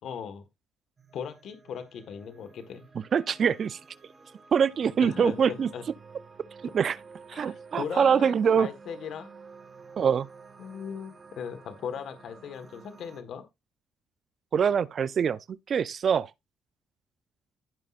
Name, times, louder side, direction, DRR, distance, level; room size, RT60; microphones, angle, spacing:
voice 1, 0.0-0.4 1.1-2.9 5.0-5.8 7.3-9.3 10.6-13.4, left 7 dB, 70° left, 1.5 m, -38 dB
sound 1, 1.0-13.2, right 5 dB, 35° right, 1.5 m, -51 dB
voice 2, 3.1-3.8 4.5-5.7 6.7-7.0 7.3-8.7 10.0-10.3 14.5-16.3, right 7 dB, 55° right, 0.5 m, -24 dB
15.5 x 5.5 x 2.5 m
cardioid pair, 90°, 0 cm